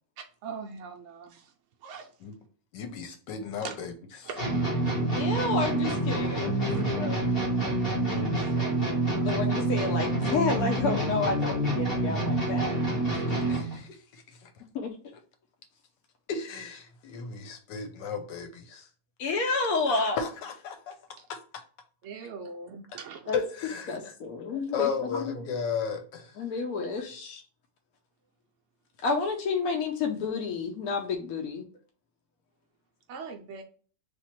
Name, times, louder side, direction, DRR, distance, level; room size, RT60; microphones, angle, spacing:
voice 1, 0.2-1.5 1.8-2.1 3.6-3.7 4.2-4.9 6.7-6.8 8.0-8.9 22.0-23.3 33.1-33.6, right 5 dB, 75° right, 0.6 m, -42 dB
voice 2, 2.7-4.3 13.1-14.5 16.3-18.9 19.9-21.0 21.3-21.4 23.3-26.3 27.0-27.4, left 6 dB, 85° left, 1.4 m, -35 dB
sound 1, 4.4-13.8, right 2 dB, 35° left, 1.6 m, -27 dB
voice 3, 5.1-7.2 9.1-12.8 14.7-14.9 19.2-20.2 23.3-23.4 23.9-25.4 26.4-27.3 29.0-31.6, left 4 dB, 65° left, 1.0 m, -30 dB
3.4 x 2.8 x 4.4 m
omnidirectional pair, 1.9 m